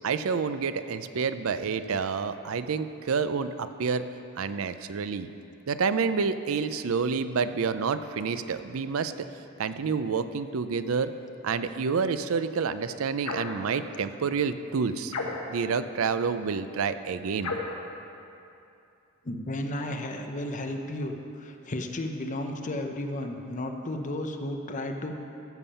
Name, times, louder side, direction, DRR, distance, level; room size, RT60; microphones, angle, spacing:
voice 1, 0.0-4.0 4.4-5.3 5.7-9.3 9.6-11.1 11.4-15.1 15.5-17.5, right 5 dB, 70° right, 12 dB, 0.5 m, -28 dB
sound 1, 13.2-13.6 15.1-15.7 17.4-17.8, left 3 dB, 85° left, 1.3 m, -33 dB
voice 2, 19.2-25.1, left 1 dB, 35° left, 4 dB, 0.8 m, -33 dB
14.0 x 7.2 x 5.6 m, 2.7 s
head